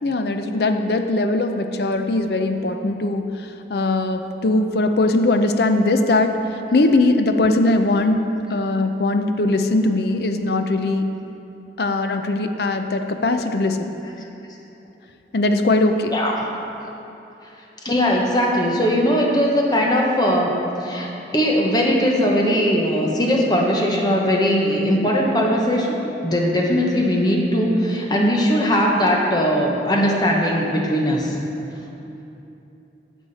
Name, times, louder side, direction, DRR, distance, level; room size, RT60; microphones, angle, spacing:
voice 1, 0.0-8.2 8.5-11.0 11.8-13.9 15.3-16.2, left 2 dB, 60° left, 7 dB, 0.6 m, -20 dB
voice 2, 17.8-21.1 21.3-26.0 26.2-31.3, equal, 25° left, -1 dB, 1.1 m, -19 dB
12.0 x 7.3 x 4.2 m, 2.9 s
head